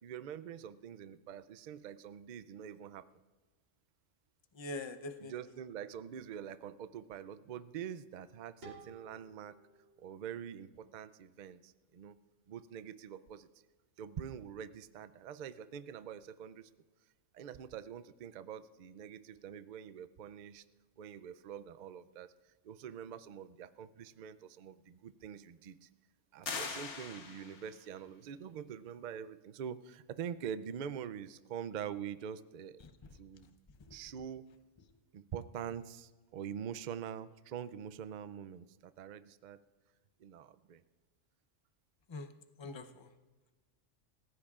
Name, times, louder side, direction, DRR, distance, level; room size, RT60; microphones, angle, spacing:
voice 1, 0.0-3.1 5.2-9.6 10.0-12.2 12.5-13.5 14.0-16.7 17.3-20.6 21.0-22.3 22.6-25.9 26.3-32.8 33.1-33.5 33.9-34.5 35.1-39.6 40.2-40.8, right 8 dB, 60° right, 13 dB, 0.4 m, -45 dB
voice 2, 4.5-5.6 33.9-34.0 42.1-42.3 42.6-43.1, left 2 dB, 30° left, 7 dB, 0.6 m, -43 dB
sound 1, 8.6-11.5, right 3 dB, 90° right, 3.3 m, -57 dB
sound 2, 26.4-27.8, left 5 dB, 65° left, 1.4 m, -41 dB
27.5 x 15.5 x 2.4 m, 1.3 s
omnidirectional pair, 1.3 m